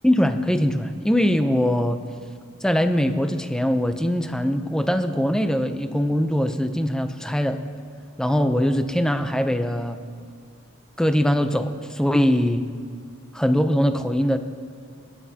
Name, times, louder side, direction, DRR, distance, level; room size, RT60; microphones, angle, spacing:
voice 1, 0.0-2.0 2.6-7.6 8.2-10.0 11.0-12.7 13.3-14.4, equal, 5° left, 8 dB, 0.6 m, -22 dB
28.0 x 9.7 x 2.9 m, 2.1 s
head